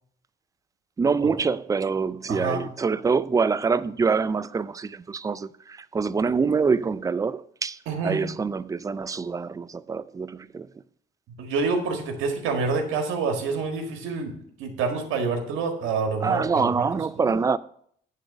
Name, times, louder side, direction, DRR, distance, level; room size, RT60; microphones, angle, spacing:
voice 1, 1.0-10.7 16.2-17.6, right 5 dB, 15° right, 0.3 m, -25 dB
voice 2, 2.3-2.7 7.9-8.2 11.4-16.9 17.2-17.3, right 4 dB, 90° right, 1.6 m, -27 dB
9.6 x 3.8 x 6.0 m
cardioid pair, 90°, 20 cm